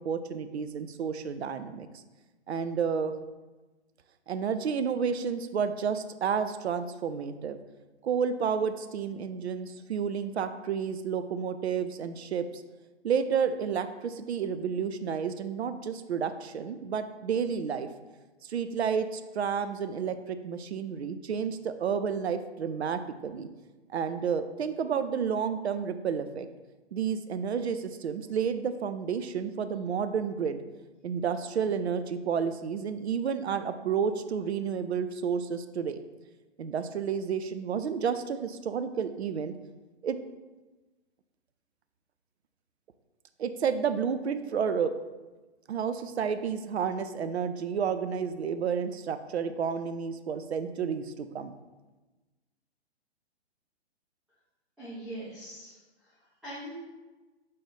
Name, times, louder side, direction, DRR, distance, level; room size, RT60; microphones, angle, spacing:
voice 1, 0.0-1.9 2.5-3.1 4.3-7.6 8.0-12.6 13.0-17.9 18.5-23.5 23.9-26.5 26.9-30.6 31.0-36.0 36.6-39.5 40.0-40.2 43.4-44.9 45.7-51.5, right 7 dB, 70° right, 10 dB, 0.5 m, -31 dB
voice 2, 54.8-56.8, right 1 dB, ahead, -13 dB, 0.5 m, -42 dB
4.2 x 3.1 x 4.0 m, 1.2 s
figure-of-eight pair, 125°, 33 cm